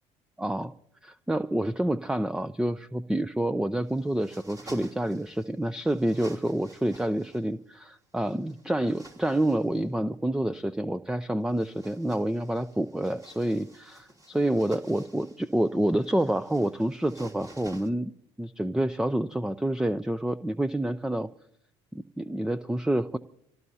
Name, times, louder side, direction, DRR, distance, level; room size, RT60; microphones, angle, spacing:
voice 1, 0.4-0.7 1.0-18.1 18.4-21.3 21.9-23.2, right 1 dB, 5° right, 14 dB, 0.6 m, -28 dB
sound 1, 3.8-5.5 5.8-7.5 8.2-9.8 11.4-17.9, right 1 dB, 25° right, 3.0 m, -51 dB
26.5 x 18.0 x 2.8 m, 0.73 s
supercardioid pair, 75°, 14 cm